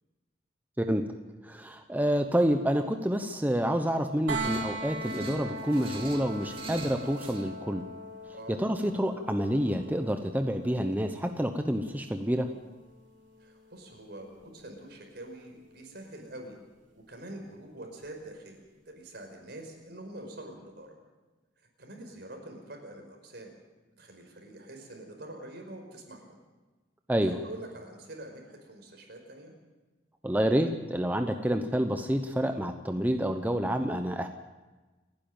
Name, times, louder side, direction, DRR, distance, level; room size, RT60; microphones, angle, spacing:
voice 1, 0.8-1.1 1.4-7.8 8.5-12.5 27.1-27.4 30.2-34.3, equal, 10° right, 6 dB, 0.9 m, -28 dB
sound 1, 4.3-16.1 18.0-18.1, right 2 dB, 80° right, 4.2 m, -42 dB
sound 2, 4.4-7.5, right 2 dB, 30° right, 2.5 m, -43 dB
voice 2, 13.4-16.6 17.1-18.6 18.9-20.9 21.6-23.6 24.0-26.4 27.2-29.5, right 1 dB, 60° right, 2 dB, 5.2 m, -45 dB
29.0 x 10.5 x 9.0 m, 1.2 s
head